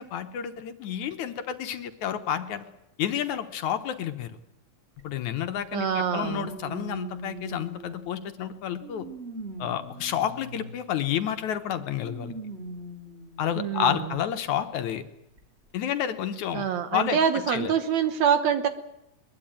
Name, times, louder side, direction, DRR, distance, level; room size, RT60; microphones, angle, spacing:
voice 1, 0.0-2.7 3.0-4.3 5.0-9.1 9.6-12.3 13.4-15.0 15.7-16.7 16.9-17.2 17.5-17.7, left 9 dB, 65° left, 8 dB, 2.3 m, -30 dB
sound 1, 5.0-5.1 6.2-8.2 8.8-10.8 12.0-13.4 14.2-14.3 15.4-15.5, right 2 dB, 20° right, 2.6 m, -40 dB
voice 2, 5.7-6.5 13.6-14.0 16.5-18.7, right 8 dB, 65° right, 10 dB, 2.1 m, -25 dB
21.5 x 21.5 x 9.0 m, 0.85 s
omnidirectional pair, 3.9 m